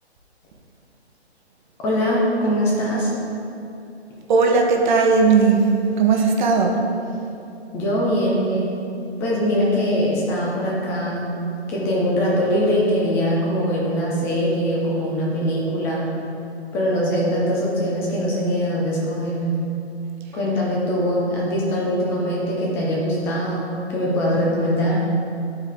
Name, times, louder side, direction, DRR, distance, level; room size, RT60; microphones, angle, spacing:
voice 1, 1.8-3.1 7.7-8.8 9.2-11.3 11.7-16.1 16.7-19.5 20.3-25.0, equal, 5° left, -4 dB, 0.4 m, -22 dB
voice 2, 4.3-5.7 6.0-6.8, right 4 dB, 45° right, 1 dB, 0.9 m, -17 dB
10.5 x 4.6 x 3.4 m, 2.7 s
hypercardioid pair, 145°, 33 cm